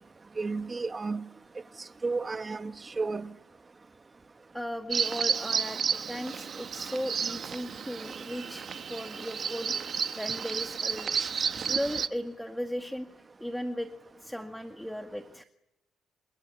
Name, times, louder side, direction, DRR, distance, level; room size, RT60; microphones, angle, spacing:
voice 1, 0.4-1.2 2.0-3.3, right 3 dB, 25° right, 1.3 m, -32 dB
voice 2, 4.5-11.1 11.7-13.1 13.4-13.9 14.2-15.4, equal, ahead, 1.9 m, -36 dB
Bird vocalization bird call bird song, 4.9-12.1, right 6 dB, 45° right, 1.2 m, -32 dB
28.0 x 26.0 x 7.2 m
cardioid pair, 95°, 0 cm